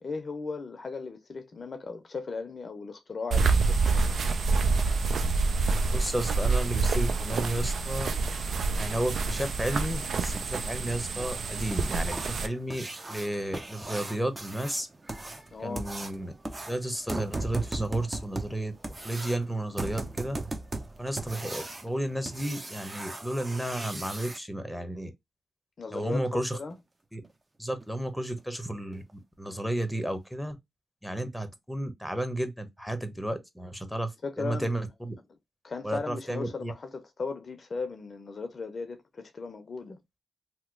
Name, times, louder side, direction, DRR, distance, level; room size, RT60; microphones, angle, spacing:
voice 1, 0.0-4.1 15.5-15.9 25.8-26.8 34.2-34.7 35.6-40.0, left 4 dB, 55° left, 0.6 m, -37 dB
sound 1, 3.3-12.5, right 4 dB, 70° right, 0.4 m, -27 dB
voice 2, 5.9-8.1 8.8-14.9 15.6-16.3 16.7-18.7 19.0-20.4 21.0-25.1 25.9-26.6 27.1-27.2 27.6-30.6 31.0-35.1 35.8-36.7, right 1 dB, ahead, 0.9 m, -33 dB
sound 2, 11.2-24.4 26.7-26.8 27.2-27.3 27.8-27.9 28.4-28.5 28.9-29.1 29.5-29.6 30.0-30.1, right 2 dB, 30° right, 0.7 m, -38 dB
2.9 x 2.0 x 3.7 m
supercardioid pair, 45°, 0 cm